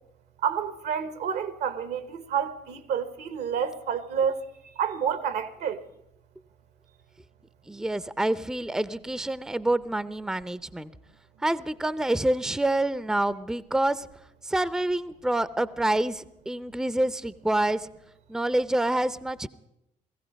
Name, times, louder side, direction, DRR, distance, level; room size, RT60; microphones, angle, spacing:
voice 1, 0.4-4.4 4.8-5.8, right 7 dB, 75° right, 1.2 m, -29 dB
voice 2, 7.7-10.9 11.4-14.1 14.4-17.9 18.3-19.5, right 1 dB, 5° right, 0.6 m, -27 dB
17.0 x 15.5 x 5.2 m
hypercardioid pair, 55°, 17 cm